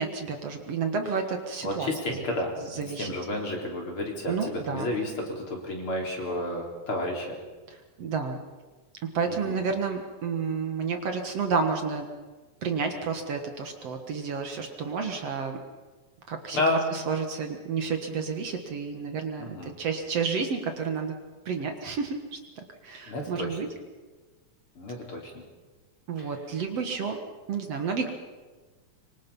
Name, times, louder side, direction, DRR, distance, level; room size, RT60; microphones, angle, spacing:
voice 1, 0.0-2.2 2.7-3.1 4.3-4.9 7.7-8.4 9.0-12.1 12.6-15.6 16.3-21.2 21.5-22.4 22.8-23.7 26.1-27.2 27.5-28.1, right 5 dB, 55° right, 5 dB, 2.5 m, -30 dB
voice 2, 1.6-7.4 9.2-9.6 16.5-16.8 19.4-19.7 23.1-23.6 24.8-25.3 26.2-26.3, left 1 dB, 45° left, 0 dB, 4.4 m, -31 dB
25.0 x 24.5 x 5.5 m, 1.3 s
omnidirectional pair, 3.5 m